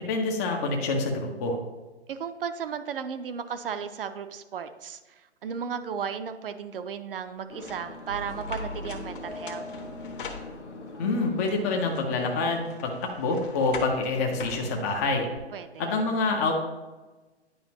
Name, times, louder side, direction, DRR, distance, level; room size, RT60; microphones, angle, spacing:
voice 1, 0.1-1.6 11.0-15.3 15.8-16.5, left 3 dB, 15° left, 1 dB, 0.4 m, -27 dB
voice 2, 2.1-9.6 15.5-16.0, right 7 dB, 55° right, 9 dB, 0.6 m, -35 dB
sound 1, 7.5-12.6, left 3 dB, 80° left, 1.1 m, -43 dB
sound 2, 7.6-11.0 11.5-15.4, left 5 dB, 50° left, 1.0 m, -44 dB
sound 3, 8.1-11.7, left 1 dB, 85° right, 1.2 m, -41 dB
9.3 x 4.9 x 2.8 m, 1.2 s
figure-of-eight pair, 130°, 34 cm